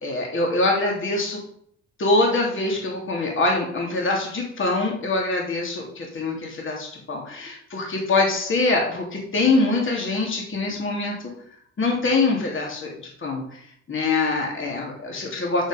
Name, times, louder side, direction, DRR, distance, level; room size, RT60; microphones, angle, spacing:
voice 1, 0.0-1.4 2.0-11.3 11.8-12.9 13.2-15.7, left 2 dB, 40° left, 0 dB, 3.1 m, -24 dB
8.7 x 7.8 x 5.2 m, 0.66 s
cardioid pair, 90°, 30 cm